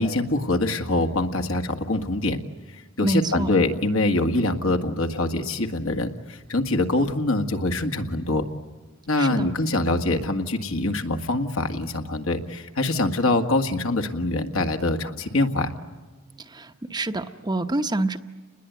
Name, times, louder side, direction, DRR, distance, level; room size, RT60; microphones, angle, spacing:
voice 1, 0.0-2.4 3.0-8.4 9.1-15.7, left 2 dB, 70° left, 5 dB, 1.9 m, -24 dB
voice 2, 3.0-3.5 9.2-9.5 16.4-18.2, right 2 dB, 20° right, 8 dB, 0.9 m, -27 dB
29.5 x 21.0 x 9.4 m, 1.4 s
head